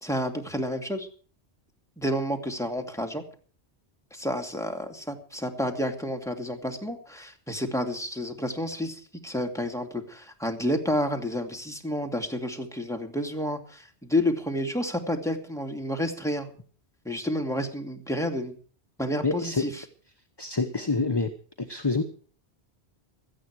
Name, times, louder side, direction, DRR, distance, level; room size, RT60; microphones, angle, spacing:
voice 1, 0.0-1.1 2.0-3.2 4.1-16.5 17.0-18.5 19.0-19.8, left 1 dB, 5° left, 3 dB, 2.5 m, -30 dB
voice 2, 19.2-19.6 20.4-21.3 21.6-22.0, left 3 dB, 25° left, 7 dB, 1.1 m, -26 dB
17.0 x 13.5 x 4.8 m, 0.42 s
omnidirectional pair, 1.1 m